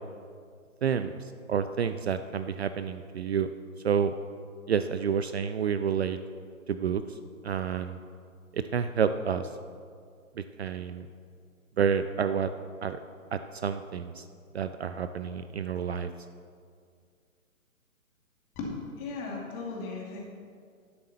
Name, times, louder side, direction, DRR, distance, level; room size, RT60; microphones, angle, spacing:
voice 1, 1.5-3.5 3.8-4.1 4.7-6.2 6.7-7.0 7.4-8.0 8.5-9.5 10.6-11.1 11.8-12.5 12.8-13.0 13.3-14.2 14.5-16.1, right 7 dB, 50° right, 10 dB, 0.5 m, -29 dB
voice 2, 18.6-20.2, left 3 dB, 20° left, -2 dB, 2.4 m, -36 dB
11.5 x 7.3 x 6.8 m, 2.1 s
figure-of-eight pair, 130°, 42 cm